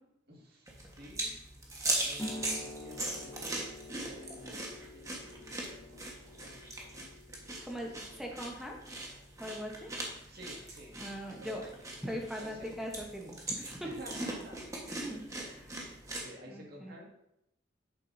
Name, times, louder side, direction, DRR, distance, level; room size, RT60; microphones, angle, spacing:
voice 1, 0.3-1.4 2.0-7.0 7.8-8.3 10.3-11.0 11.4-11.7 12.0-12.1 12.4-12.7 13.8-14.6 15.8-17.1, equal, 55° right, -2 dB, 2.0 m, -51 dB
sound 1, 0.7-16.3, right 2 dB, 15° right, 1.3 m, -40 dB
sound 2, 2.2-9.3, left 1 dB, 15° left, 1.5 m, -48 dB
voice 2, 7.6-8.8 9.4-9.9 11.0-11.6 12.0-13.9 14.9-15.7 16.5-16.9, equal, ahead, 0 dB, 1.0 m, -41 dB
8.7 x 7.4 x 2.7 m, 0.81 s
head